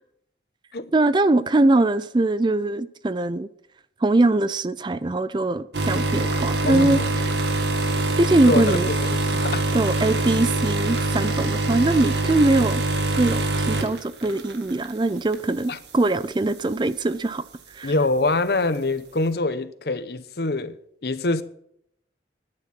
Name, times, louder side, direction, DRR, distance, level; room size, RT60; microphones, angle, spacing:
voice 1, 0.9-3.5 4.0-7.0 8.2-8.9 9.7-12.8 13.2-17.4 17.7-17.9, right 2 dB, 25° right, 0.4 m, -22 dB
sound 1, 5.7-14.9 15.3-15.6 16.5-16.6, right 2 dB, 75° right, 1.8 m, -24 dB
voice 2, 6.6-7.1 8.5-9.6 15.7-15.8 17.8-20.8 21.0-21.4, left 2 dB, 60° left, 0.8 m, -25 dB
13.0 x 9.9 x 5.9 m
head